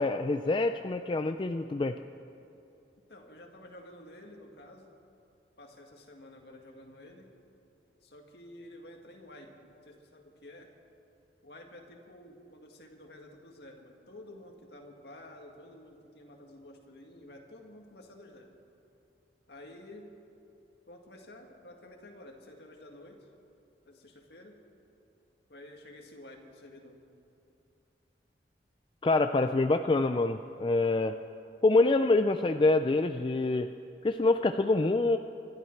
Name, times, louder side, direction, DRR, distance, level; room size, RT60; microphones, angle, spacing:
voice 1, 0.0-2.0 29.0-31.2 31.6-33.7 34.0-35.2, left 2 dB, 25° left, 8 dB, 0.3 m, -26 dB
voice 2, 3.1-4.9 5.6-7.3 8.0-10.7 11.4-18.5 19.5-20.2 20.9-23.3 23.9-24.6 25.5-27.0, left 1 dB, 70° left, 2 dB, 1.9 m, -51 dB
25.5 x 12.5 x 4.6 m, 2.7 s
head